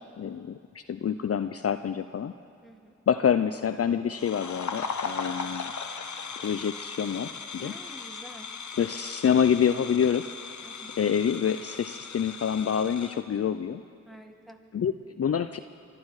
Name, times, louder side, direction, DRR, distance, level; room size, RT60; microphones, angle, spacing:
voice 1, 0.0-2.3 3.1-5.7 6.4-7.7 8.8-10.3 11.0-13.8 14.7-15.6, left 8 dB, 50° left, 10 dB, 0.5 m, -27 dB
voice 2, 2.6-3.0 7.6-8.5 10.6-11.0 14.1-14.6, equal, ahead, 3 dB, 1.6 m, -48 dB
sound 1, 4.1-13.2, left 5 dB, 70° left, 1.0 m, -38 dB
24.5 x 12.5 x 4.8 m, 2.4 s
cardioid pair, 45°, 30 cm